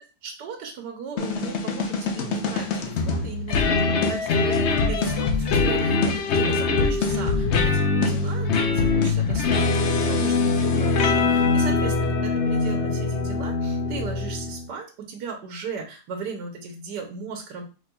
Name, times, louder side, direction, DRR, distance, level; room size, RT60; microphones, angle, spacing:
voice 1, 0.2-17.6, right 5 dB, 80° right, 3 dB, 1.4 m, -37 dB
sound 1, 1.2-14.7, left 4 dB, 60° left, 0.7 m, -23 dB
5.2 x 4.1 x 2.3 m, 0.33 s
omnidirectional pair, 1.8 m